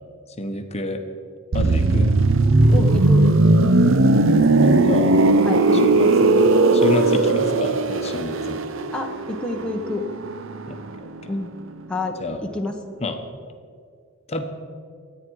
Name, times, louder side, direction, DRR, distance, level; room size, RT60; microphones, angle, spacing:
voice 1, 0.4-1.0 1.5-2.1 4.3-5.2 5.7-6.5 6.7-8.6 10.7-10.8 12.2-12.4 13.0-13.2 14.3-14.4, left 2 dB, 30° left, 6 dB, 1.0 m, -29 dB
sound 1, 1.5-11.2 11.4-11.7, right 2 dB, 65° right, 0.7 m, -18 dB
voice 2, 2.7-3.3 5.4-5.6 8.9-10.1 11.3-11.5 11.9-12.8, left 2 dB, 5° left, 1 dB, 0.9 m, -28 dB
24.0 x 9.2 x 4.7 m, 2.2 s
head